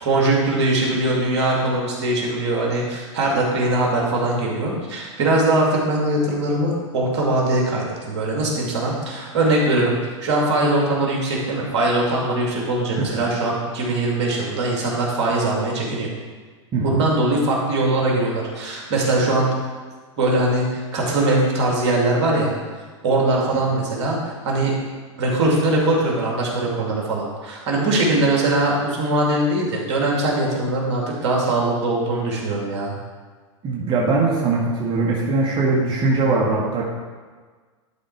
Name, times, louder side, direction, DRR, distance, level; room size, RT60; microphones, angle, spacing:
voice 1, 0.0-16.1 16.8-19.5 20.2-22.5 23.0-24.2 24.4-24.8 25.2-32.9, right 2 dB, 65° right, -2 dB, 2.5 m, -21 dB
voice 2, 16.7-17.0 33.6-36.8, right 3 dB, 30° right, -4 dB, 1.7 m, -21 dB
11.5 x 4.2 x 4.7 m, 1.5 s
hypercardioid pair, 105°, 16 cm